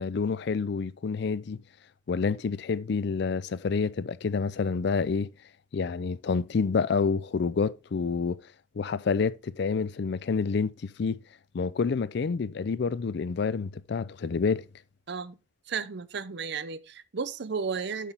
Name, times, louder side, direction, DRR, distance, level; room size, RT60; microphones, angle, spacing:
voice 1, 0.0-1.6 2.1-5.3 5.7-8.4 8.8-11.2 11.5-14.6, left 5 dB, 60° left, 0.4 m, -28 dB
voice 2, 15.1-15.4 15.7-18.1, right 5 dB, 60° right, 0.6 m, -33 dB
8.2 x 6.0 x 3.6 m
head